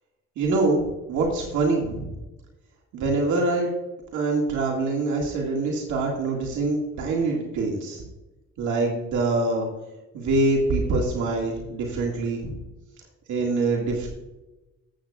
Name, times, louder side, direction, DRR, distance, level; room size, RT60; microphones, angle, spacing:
voice 1, 0.4-2.1 2.9-3.7 4.1-8.0 8.6-9.7 10.1-12.6 13.3-14.1, right 3 dB, 80° right, -1 dB, 2.0 m, -24 dB
14.0 x 8.2 x 2.4 m, 1.0 s
cardioid pair, 90°, 30 cm